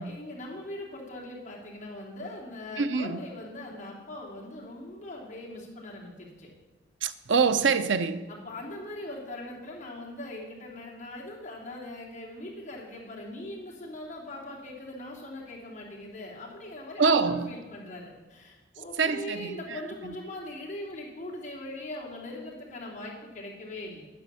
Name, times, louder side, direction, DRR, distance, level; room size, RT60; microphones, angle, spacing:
voice 1, 0.0-6.5 8.3-24.0, left 1 dB, 40° left, 3.1 m, -41 dB
voice 2, 2.8-3.2 7.0-8.3 17.0-17.6 19.0-20.1, right 5 dB, 85° right, 0.7 m, -26 dB
10.0 x 9.7 x 7.0 m
head